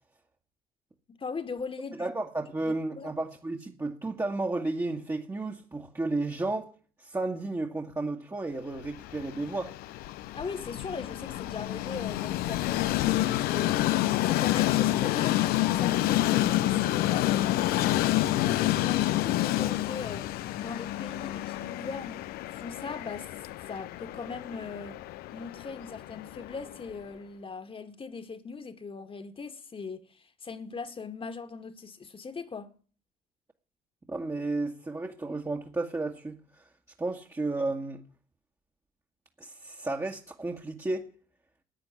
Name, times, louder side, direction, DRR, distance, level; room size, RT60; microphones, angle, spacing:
voice 1, 1.1-2.1 2.7-3.1 10.3-22.2 22.5-23.3 23.7-25.0 25.3-32.7, left 4 dB, 30° left, 2.1 m, -40 dB
voice 2, 2.0-6.7 7.0-9.7 34.1-36.7 37.0-38.0 39.4-41.1, right 2 dB, 15° right, 1.9 m, -33 dB
Train, 8.8-26.9, left 15 dB, 60° left, 0.7 m, -28 dB
15.0 x 9.7 x 9.9 m
figure-of-eight pair, 55°, 18 cm